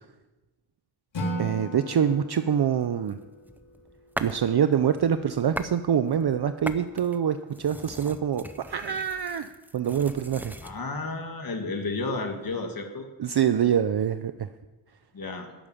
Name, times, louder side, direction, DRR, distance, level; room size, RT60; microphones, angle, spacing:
Acoustic guitar / Strum, 1.1-4.3, right 1 dB, 65° left, 3.3 m, -36 dB
voice 1, 1.4-3.2 4.2-10.5 13.2-14.5, right 8 dB, 55° right, 10 dB, 0.6 m, -25 dB
sound 1, 3.1-4.5 4.9-5.8 6.1-10.8, right 1 dB, 5° right, 0.6 m, -39 dB
voice 2, 10.6-13.1 15.1-15.5, left 3 dB, 45° left, 4 dB, 1.9 m, -32 dB
12.5 x 8.7 x 9.9 m, 1.2 s
wide cardioid pair, 140°, 47 cm